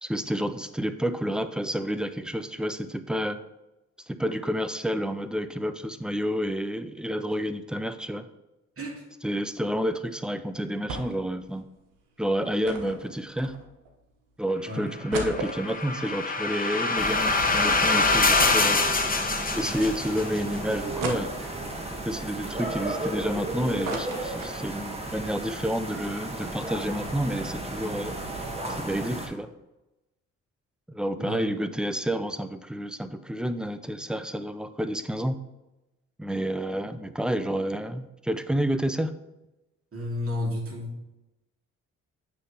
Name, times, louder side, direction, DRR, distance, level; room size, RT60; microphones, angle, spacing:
voice 1, 0.0-3.4 4.1-8.3 9.2-11.6 12.2-13.5 14.4-18.9 19.5-21.3 22.0-28.2 28.7-29.5 30.9-35.3 36.2-39.1, equal, ahead, 11 dB, 0.6 m, -29 dB
sound 1, 10.9-11.3 11.6-11.7 12.6-13.9 14.4-14.5 14.9-17.3 17.7-17.8 18.4-19.5 20.0-20.1 21.0-21.8 22.4-23.4 23.6-25.0 25.3-25.4 25.7-25.9, right 3 dB, 75° right, 1.1 m, -36 dB
sound 2, 15.1-20.4, left 3 dB, 25° left, 1.1 m, -25 dB
sound 3, 17.0-29.3, right 1 dB, 20° right, 1.7 m, -34 dB
voice 2, 31.2-31.5 39.9-41.0, left 1 dB, 40° right, -1 dB, 2.7 m, -32 dB
8.2 x 3.3 x 5.7 m, 0.98 s
hypercardioid pair, 50°, 33 cm